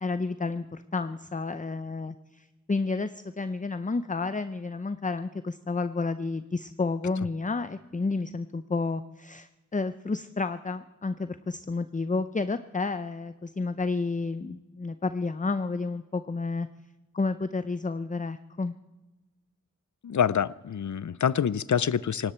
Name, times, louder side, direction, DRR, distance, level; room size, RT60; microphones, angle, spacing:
voice 1, 0.0-16.7 17.1-18.7, left 3 dB, 25° left, 11 dB, 0.6 m, -31 dB
voice 2, 20.0-22.3, left 8 dB, 70° left, 19 dB, 0.5 m, -26 dB
18.0 x 17.5 x 4.4 m, 1.1 s
wide cardioid pair, 40°, 30 cm